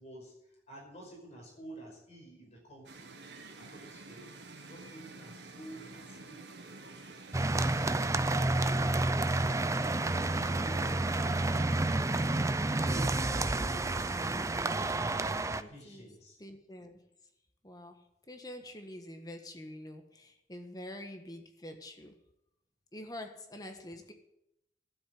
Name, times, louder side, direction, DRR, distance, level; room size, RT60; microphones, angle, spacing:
voice 1, 0.0-3.2 3.5-4.4 4.6-7.2 9.9-15.2 15.7-16.4, right 1 dB, 40° left, -1 dB, 5.4 m, -51 dB
sound 1, 2.8-7.9, right 3 dB, 75° right, 1.6 m, -49 dB
sound 2, 7.3-15.6, right 2 dB, 15° right, 0.5 m, -30 dB
voice 2, 15.6-16.1 16.4-17.0 17.6-22.2 22.9-24.1, left 1 dB, 20° left, 5 dB, 1.4 m, -46 dB
12.5 x 8.0 x 9.4 m, 0.83 s
head